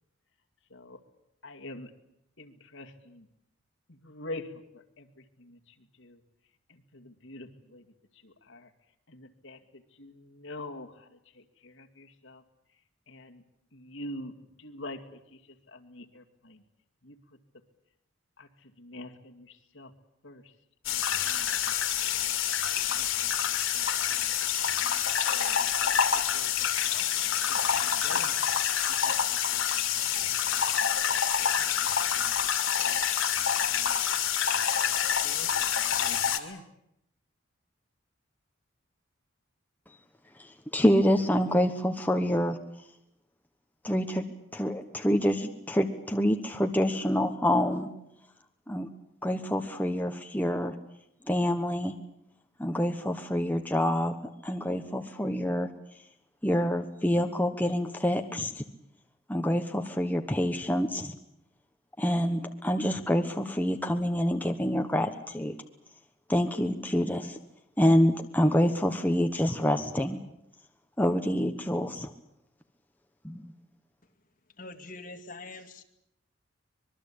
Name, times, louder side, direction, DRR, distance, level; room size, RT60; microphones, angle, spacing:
voice 1, 0.7-1.0 1.4-1.9 2.4-3.3 3.9-6.2 6.7-7.9 8.1-8.7 9.1-11.1 11.3-12.4 13.1-13.4 13.7-14.3 14.6-16.6 17.0-17.2 18.4-19.9 20.2-20.5 20.8-22.0 22.9-24.2 24.8-27.1 27.5-28.3 28.9-30.7 31.4-31.7 32.1-32.5 32.8-33.2 33.7-34.3 35.2-36.6, left 1 dB, 70° left, 4 dB, 2.3 m, -47 dB
sound 1, 20.8-36.4, left 9 dB, 85° left, 2.5 m, -27 dB
voice 2, 40.4-42.6 43.8-44.2 44.5-47.9 48.7-48.9 49.2-50.7 51.3-51.9 52.6-54.2 54.4-55.7 56.4-58.6 59.3-61.2 62.0-65.6 66.3-67.4 67.8-70.2 71.0-72.1 73.2-73.5, equal, 10° left, 5 dB, 1.2 m, -27 dB
voice 3, 74.6-75.8, left 2 dB, 40° left, 4 dB, 2.4 m, -44 dB
25.0 x 21.5 x 8.7 m, 0.78 s
head